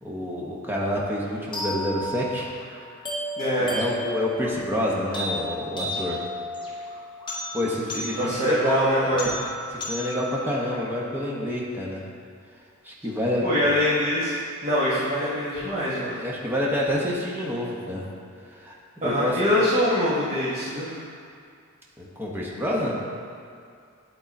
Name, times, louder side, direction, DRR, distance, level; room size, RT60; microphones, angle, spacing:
voice 1, 0.0-2.5 3.6-6.2 7.5-9.2 9.7-12.0 12.8-13.8 16.2-18.0 18.5-18.7 19.0-19.6 22.0-22.9, left 1 dB, 10° right, -4 dB, 1.0 m, -28 dB
sound 1, 1.5-11.6, equal, 20° left, 1.0 m, -34 dB
voice 2, 3.4-3.8 8.2-9.3 13.4-14.3 14.6-16.2 19.0-21.0, equal, 30° right, -11 dB, 1.3 m, -24 dB
10.5 x 3.9 x 4.2 m, 2.3 s
head